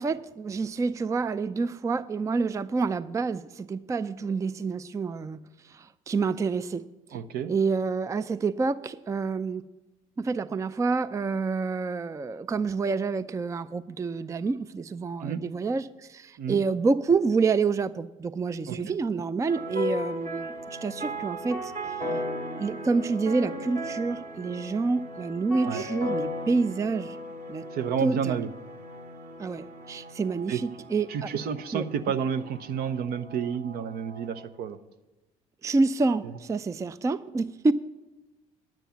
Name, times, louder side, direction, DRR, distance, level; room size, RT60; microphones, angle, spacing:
voice 1, 0.0-7.2 7.5-9.6 10.2-22.0 22.6-27.2 27.5-27.6 28.0-28.4 29.4-31.3 31.7-31.9 35.6-37.7, right 4 dB, 15° right, 16 dB, 0.4 m, -28 dB
voice 2, 7.1-7.5 15.2-15.4 16.4-16.6 18.7-19.0 25.6-25.8 27.7-28.5 30.5-30.6 31.1-34.8, right 7 dB, 60° right, 12 dB, 0.7 m, -30 dB
sound 1, 19.5-34.4, equal, 40° right, 2.2 m, -37 dB
10.5 x 9.0 x 5.7 m, 1.1 s
hypercardioid pair, 60°, 18 cm